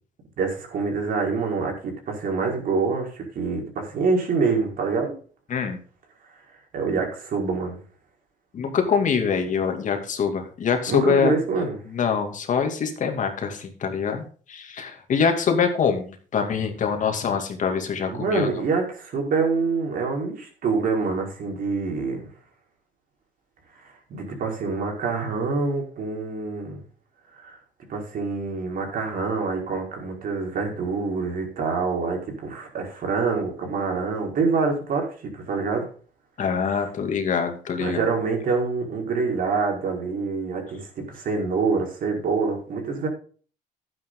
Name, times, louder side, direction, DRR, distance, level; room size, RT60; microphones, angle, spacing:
voice 1, 0.4-5.1 6.7-7.8 10.9-11.8 18.1-22.3 23.8-26.8 27.3-27.6 27.9-35.9 37.8-43.1, right 4 dB, 55° right, 1 dB, 5.1 m, -26 dB
voice 2, 8.5-11.3 11.9-14.2 14.5-18.5 36.4-38.1, left 6 dB, 50° left, 5 dB, 2.6 m, -24 dB
12.0 x 9.6 x 3.9 m, 0.41 s
cardioid pair, 110°, 17 cm